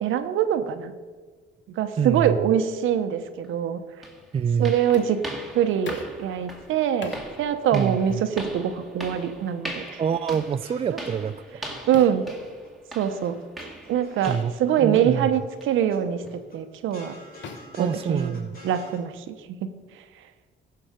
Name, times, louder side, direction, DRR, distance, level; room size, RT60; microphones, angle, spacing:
voice 1, 0.0-0.9 1.7-3.8 4.6-5.2 5.5-10.0 11.9-12.2 12.9-13.4 13.9-17.1 17.8-18.4 18.6-19.4 19.6-19.7 19.9-20.0, right 9 dB, 85° right, 10 dB, 0.8 m, -24 dB
voice 2, 2.0-2.4 4.3-4.8 7.7-8.2 10.0-11.4 14.3-14.5 14.8-15.3 17.8-18.6, right 7 dB, 30° right, 12 dB, 0.3 m, -26 dB
sound 1, 3.4-3.5 4.0-14.7 15.0-15.2 15.6-15.8 16.3-16.4 16.9-17.0, right 1 dB, ahead, 2.1 m, -40 dB
sound 2, 4.9-5.3 5.9-6.2 7.0-7.3 8.1-8.3 9.1-9.3 10.3-10.6 11.9-12.3 13.6-13.7 14.2-14.3 15.1-15.3 16.2-16.5 17.4-18.6, left 5 dB, 65° left, 1.1 m, -42 dB
sound 3, 10.6-11.7 12.0-12.7 13.0-15.0 15.3-16.0 16.3-19.0, left 1 dB, 50° left, 3.9 m, -48 dB
15.0 x 5.8 x 5.1 m, 1.4 s
cardioid pair, 90°, 20 cm